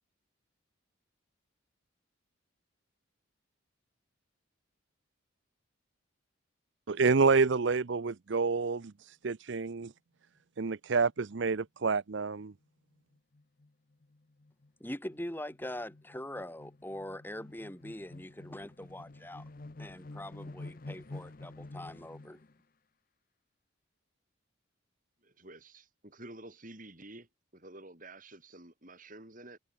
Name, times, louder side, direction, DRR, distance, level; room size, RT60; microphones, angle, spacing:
voice 1, 6.9-9.9 10.6-12.5, right 4 dB, 60° right, 0.6 m, -28 dB
sound 1, 12.1-12.2 12.5-12.6 12.9-22.6, left 2 dB, 40° left, 0.7 m, -49 dB
voice 2, 14.8-19.4 19.8-22.4, left 1 dB, 10° left, 1.8 m, -42 dB
voice 3, 25.2-27.3 27.5-29.6, right 2 dB, 40° right, 4.8 m, -50 dB
head